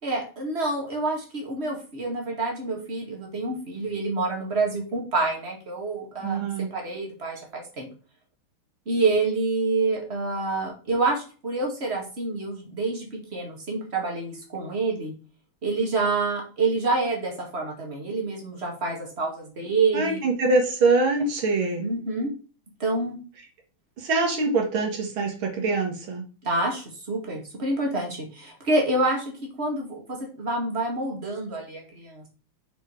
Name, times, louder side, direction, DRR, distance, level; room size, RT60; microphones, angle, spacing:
voice 1, 0.0-7.9 8.9-15.1 15.6-20.2 21.8-22.3 22.8-23.2 26.4-32.3, right 3 dB, 30° right, 0 dB, 2.3 m, -27 dB
voice 2, 6.2-6.7 19.9-21.8 24.0-26.2, right 3 dB, 75° right, 3 dB, 2.5 m, -24 dB
6.4 x 5.0 x 4.8 m, 0.37 s
omnidirectional pair, 2.2 m